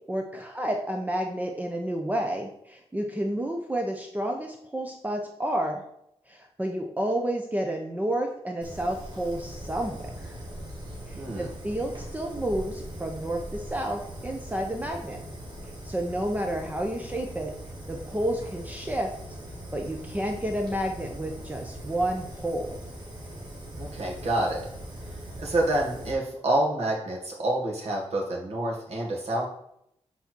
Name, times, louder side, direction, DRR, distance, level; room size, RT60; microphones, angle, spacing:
voice 1, 0.1-5.8 6.3-10.4 11.1-15.2 15.8-17.5 17.9-19.1 19.7-22.8, right 1 dB, 15° right, 2 dB, 0.7 m, -30 dB
Fire, 8.6-26.1, right 1 dB, 40° right, 2.2 m, -40 dB
voice 2, 11.1-11.5 23.8-24.7 25.4-29.5, right 1 dB, 70° right, -1 dB, 2.2 m, -27 dB
8.1 x 4.2 x 4.5 m, 0.75 s
wide cardioid pair, 135°, 11 cm